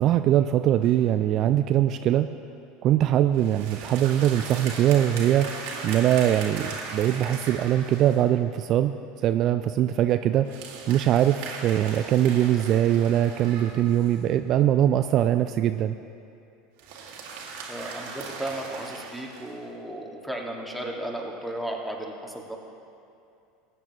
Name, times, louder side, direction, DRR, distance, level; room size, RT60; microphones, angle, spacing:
voice 1, 0.0-2.3 2.8-9.0 9.2-10.6 10.9-16.0, right 11 dB, 45° right, 9 dB, 0.3 m, -22 dB
sound 1, 0.8-1.1 3.3-8.3 10.4-14.3 16.8-19.6, right 4 dB, 65° right, 1.8 m, -38 dB
voice 2, 17.7-22.6, right 1 dB, ahead, 0 dB, 1.8 m, -34 dB
20.0 x 8.9 x 3.0 m, 2.6 s
hypercardioid pair, 75°, 0 cm